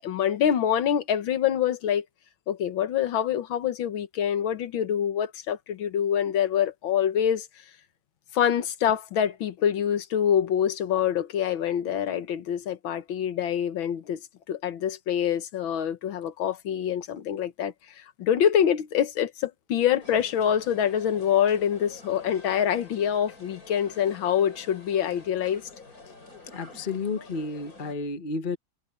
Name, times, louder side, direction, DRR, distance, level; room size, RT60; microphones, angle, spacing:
voice 1, 0.0-2.1 2.5-7.5 8.3-14.2 14.5-25.7, left 9 dB, 85° left, 1.9 m, -25 dB
sound 1, 20.0-27.9, left 3 dB, 45° left, 5.4 m, -48 dB
voice 2, 26.5-28.6, left 4 dB, 30° left, 1.3 m, -31 dB
omnidirectional pair, 2.1 m